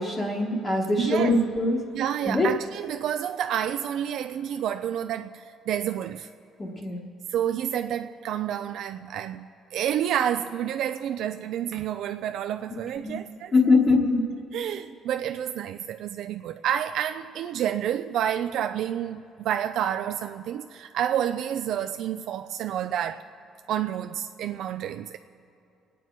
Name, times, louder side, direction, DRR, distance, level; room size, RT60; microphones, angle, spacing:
voice 1, 0.0-1.8 2.2-2.5 6.6-7.0 13.0-13.2 13.5-14.3, left 2 dB, 20° left, 1.1 m, -22 dB
voice 2, 1.0-1.4 1.9-6.3 7.3-13.5 14.5-23.3 23.7-25.2, right 10 dB, 55° right, 0.4 m, -29 dB
27.5 x 9.2 x 4.5 m
cardioid pair, 175°, 0 cm